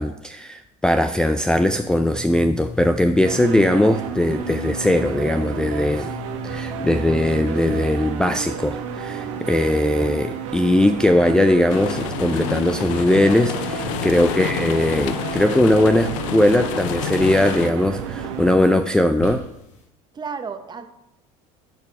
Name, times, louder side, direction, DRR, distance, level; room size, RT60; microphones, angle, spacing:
voice 1, 0.0-6.1 6.4-19.4, left 1 dB, 5° left, 8 dB, 0.4 m, -19 dB
sound 1, 1.4-19.8, left 5 dB, 50° left, 2.0 m, -39 dB
i killed sunrise, 3.2-18.6, right 8 dB, 80° right, 1.2 m, -31 dB
sound 2, 11.7-17.7, left 12 dB, 80° left, 0.6 m, -29 dB
voice 2, 20.1-20.9, right 5 dB, 25° right, 8 dB, 1.0 m, -33 dB
10.5 x 4.7 x 4.7 m, 0.85 s
supercardioid pair, 95°, 16 cm